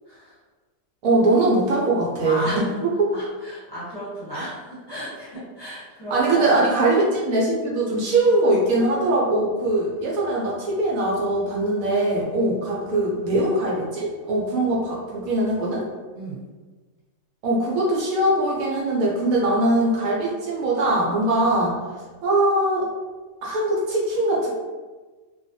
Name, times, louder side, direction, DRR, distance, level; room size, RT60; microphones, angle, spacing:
voice 1, 1.0-3.1 4.3-4.5 6.1-15.8 17.4-21.7 22.2-22.9 23.4-24.5, right 2 dB, 75° right, -4 dB, 1.0 m, -21 dB
voice 2, 2.2-2.7 3.1-6.6 12.3-12.6 16.1-16.4, right 1 dB, 20° left, -12 dB, 0.9 m, -34 dB
2.4 x 2.2 x 2.6 m, 1.3 s
omnidirectional pair, 1.5 m